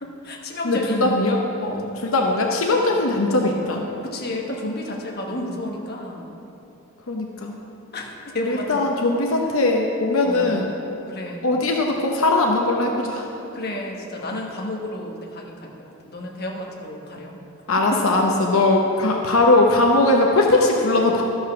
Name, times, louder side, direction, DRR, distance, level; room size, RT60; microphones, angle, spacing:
voice 1, 0.0-1.1 4.0-6.3 7.9-8.7 10.2-10.7 11.1-11.5 13.5-17.4 17.9-18.2, left 1 dB, 50° left, 0 dB, 1.2 m, -31 dB
voice 2, 0.6-3.8 7.1-7.5 8.4-10.7 11.4-13.3 17.7-21.2, left 2 dB, 85° left, 0 dB, 0.9 m, -20 dB
12.5 x 5.5 x 5.8 m, 3.0 s
head